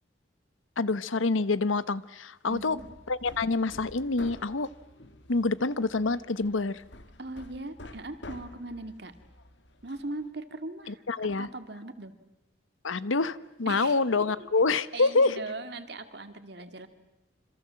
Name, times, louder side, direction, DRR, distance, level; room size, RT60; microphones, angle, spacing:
voice 1, 0.8-2.8 3.1-4.7 5.3-6.8 10.9-11.5 12.8-15.4, left 3 dB, 90° left, 16 dB, 1.0 m, -27 dB
Hammer, 2.5-10.3, left 1 dB, 65° left, 1.9 m, -49 dB
voice 2, 2.5-2.8 7.2-9.1 9.8-12.1 13.7-14.5 14.9-16.9, right 2 dB, 55° right, 8 dB, 2.2 m, -40 dB
26.5 x 26.0 x 7.6 m, 0.93 s
head